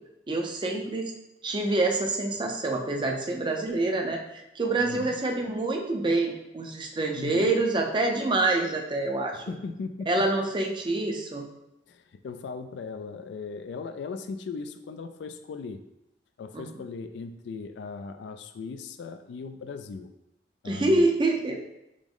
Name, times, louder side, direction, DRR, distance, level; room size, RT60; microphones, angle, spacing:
voice 1, 0.3-1.1 1.4-9.4 10.1-11.5 16.5-16.6 20.6-21.6, right 2 dB, 25° right, 2 dB, 0.5 m, -26 dB
voice 2, 4.8-5.2 7.1-7.6 9.3-10.2 11.9-15.8 16.4-20.1 20.6-21.1, left 4 dB, 70° left, 9 dB, 0.3 m, -38 dB
4.9 x 2.0 x 3.7 m, 0.86 s
head